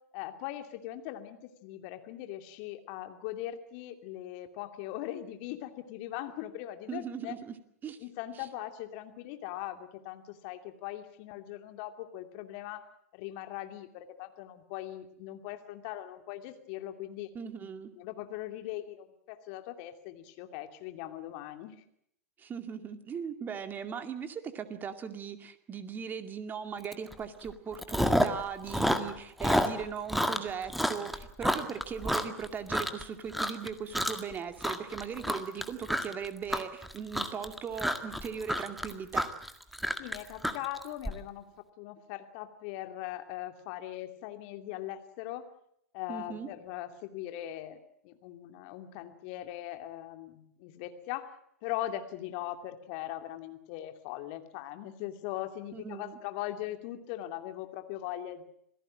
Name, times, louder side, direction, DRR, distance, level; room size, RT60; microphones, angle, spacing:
voice 1, 0.1-7.3 8.0-12.8 13.1-17.3 18.0-21.8 40.0-41.5 41.8-45.4 45.9-51.4 51.6-58.5, left 13 dB, 45° left, 7 dB, 2.7 m, -40 dB
voice 2, 6.9-7.6 7.8-8.0 8.3-8.5 17.3-17.9 22.4-39.3 46.1-46.5 55.7-56.2, right 7 dB, 25° right, 9 dB, 2.3 m, -39 dB
Chewing mastication, 26.9-27.1 27.4-28.4 28.7-33.0 33.3-33.7 33.9-34.3 34.6-41.1, equal, ahead, 1.8 m, -29 dB
27.0 x 17.5 x 7.6 m, 0.71 s
figure-of-eight pair, 100°, 8 cm